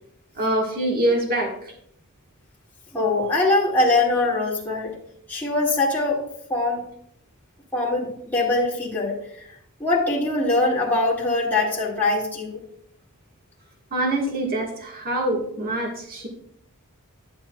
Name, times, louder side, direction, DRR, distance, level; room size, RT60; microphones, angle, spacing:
voice 1, 0.3-1.7 13.9-16.3, right 1 dB, 45° right, 0 dB, 1.5 m, -25 dB
voice 2, 2.9-5.0 5.3-6.2 6.5-6.8 7.7-9.2 9.8-12.6, left 2 dB, 10° left, -7 dB, 2.0 m, -22 dB
11.5 x 7.3 x 2.2 m, 0.68 s
head